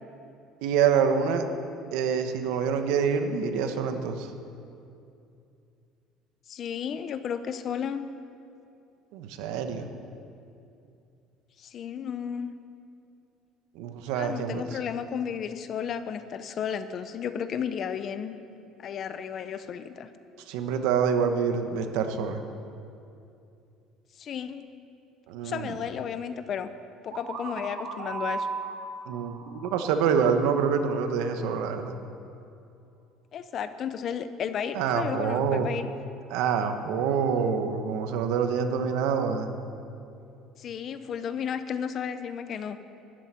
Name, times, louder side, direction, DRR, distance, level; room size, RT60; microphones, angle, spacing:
voice 1, 0.6-1.5 1.9-4.3 9.1-9.9 13.7-14.8 20.5-22.4 25.3-25.7 29.1-32.0 34.7-35.7 36.3-39.5, right 6 dB, 85° right, 7 dB, 1.2 m, -26 dB
voice 2, 6.5-8.0 11.6-12.5 14.2-18.4 18.8-20.1 24.2-24.7 25.4-26.7 27.0-28.5 33.3-35.9 40.6-42.8, left 7 dB, 35° left, 11 dB, 0.6 m, -33 dB
sound 1, 27.1-30.9, right 4 dB, 55° right, 1.8 m, -37 dB
13.0 x 7.8 x 9.9 m, 2.6 s
cardioid pair, 175°, 0 cm